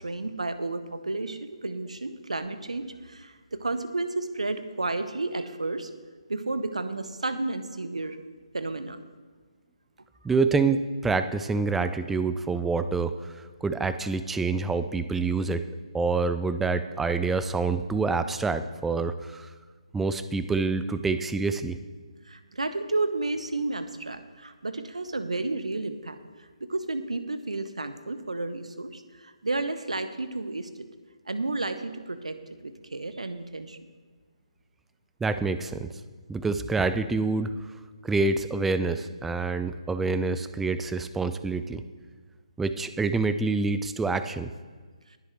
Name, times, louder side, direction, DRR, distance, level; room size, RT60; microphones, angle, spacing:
voice 1, 0.0-5.9 6.3-8.2 8.5-9.0 22.3-30.8 31.3-32.4 32.6-33.8, right 2 dB, 70° right, 11 dB, 0.9 m, -32 dB
voice 2, 10.2-15.6 15.9-19.5 19.9-21.8 35.2-35.9 36.3-37.5 38.0-41.8 42.6-44.5, right 4 dB, 5° right, 11 dB, 0.3 m, -27 dB
21.5 x 7.7 x 3.3 m, 1.5 s
figure-of-eight pair, 140°, 4 cm